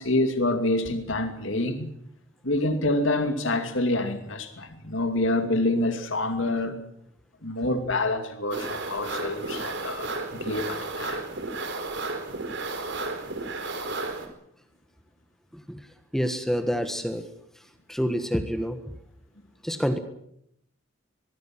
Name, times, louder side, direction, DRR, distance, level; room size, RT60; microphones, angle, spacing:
voice 1, 0.0-1.9 2.4-6.8 7.4-11.2, left 2 dB, 60° left, 2.5 m, -27 dB
sound 1, 8.5-14.3, right 3 dB, 55° right, 4.7 m, -33 dB
voice 2, 15.5-15.9 16.1-17.3 17.5-17.6 17.9-18.8 19.6-20.0, equal, ahead, 1.5 m, -27 dB
23.5 x 23.0 x 6.1 m
head